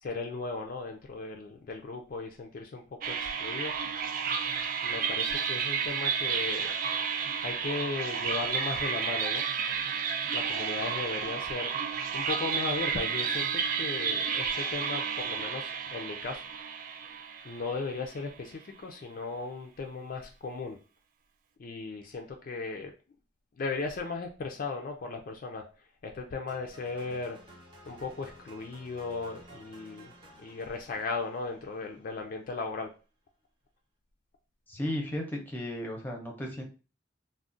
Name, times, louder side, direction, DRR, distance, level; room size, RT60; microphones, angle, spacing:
voice 1, 0.0-3.7 4.8-6.7 7.4-9.4 10.3-11.7 12.1-16.4 17.4-20.8 21.6-22.9 23.6-25.7 26.0-27.4 27.9-30.1 30.4-32.9, left 3 dB, 50° left, 3 dB, 0.4 m, -36 dB
sound 1, 3.0-18.3, right 6 dB, 50° right, 0.3 m, -31 dB
sound 2, 26.5-32.6, right 1 dB, 25° right, 0.7 m, -54 dB
voice 2, 34.7-36.6, left 1 dB, 10° left, 1 dB, 0.6 m, -34 dB
2.4 x 2.1 x 3.7 m, 0.33 s
head